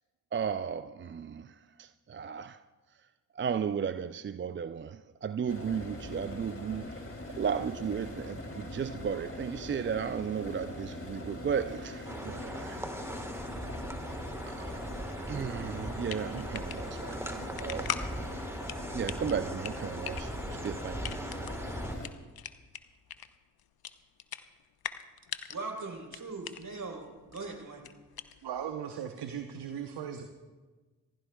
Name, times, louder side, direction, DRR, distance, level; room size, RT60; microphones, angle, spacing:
voice 1, 0.3-2.6 3.3-7.0 7.3-12.9 14.5-14.8 15.3-18.5 18.9-21.1, right 7 dB, 25° right, 0.5 m, -35 dB
sound 1, 5.5-22.1, left 2 dB, 30° left, 3.0 m, -42 dB
sound 2, 12.1-22.0, right 1 dB, 5° right, 1.6 m, -40 dB
sound 3, 15.8-28.7, left 10 dB, 55° left, 0.9 m, -43 dB
voice 2, 25.5-27.1 27.3-27.8, right 3 dB, 45° right, 4.2 m, -40 dB
voice 3, 28.4-30.3, right 8 dB, 60° right, 1.1 m, -38 dB
27.0 x 15.5 x 2.4 m
hypercardioid pair, 40°, 45 cm